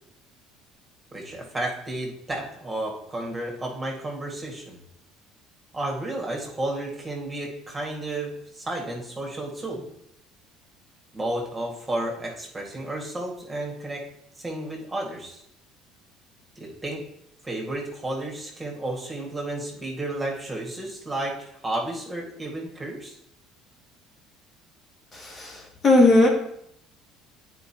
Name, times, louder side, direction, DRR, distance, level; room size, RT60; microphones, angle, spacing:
voice 1, 1.1-4.8 5.7-9.8 11.1-14.0 14.4-15.4 16.6-17.0 17.4-23.1, right 1 dB, 15° right, -1 dB, 1.9 m, -32 dB
voice 2, 25.1-26.3, left 2 dB, 40° left, 0 dB, 1.5 m, -18 dB
9.0 x 4.6 x 3.0 m, 0.73 s
supercardioid pair, 85°, 0 cm